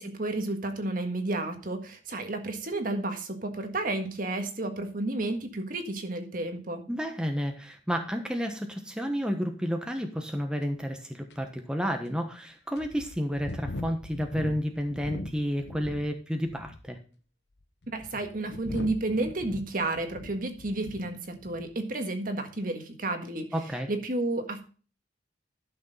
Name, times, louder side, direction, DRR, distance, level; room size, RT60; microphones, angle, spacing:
voice 1, 0.0-6.9 17.9-23.5 23.9-24.6, right 2 dB, 50° right, 6 dB, 1.6 m, -31 dB
voice 2, 6.9-17.0 23.5-23.9, equal, 5° right, 4 dB, 1.2 m, -31 dB
sound 1, 10.6-10.7 11.3-11.4 12.0-12.1 12.8-16.1 16.4-16.9 17.6-21.1 21.4-21.7, left 2 dB, 75° left, 1.0 m, -40 dB
12.0 x 6.6 x 4.1 m, 0.37 s
head